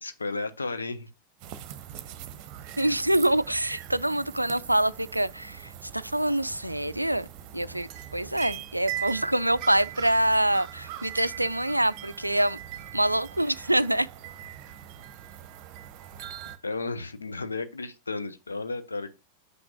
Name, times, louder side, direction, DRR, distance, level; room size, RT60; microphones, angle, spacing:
voice 1, 0.0-1.1 16.2-16.3 16.6-19.2, left 3 dB, 75° left, 0.8 m, -33 dB
sound 1, 1.4-16.6, right 11 dB, 40° right, 0.8 m, -41 dB
voice 2, 2.8-7.3 7.5-12.6 12.9-14.1, right 1 dB, 85° right, 0.3 m, -25 dB
7.7 x 5.9 x 2.4 m
figure-of-eight pair, 90°, 0 cm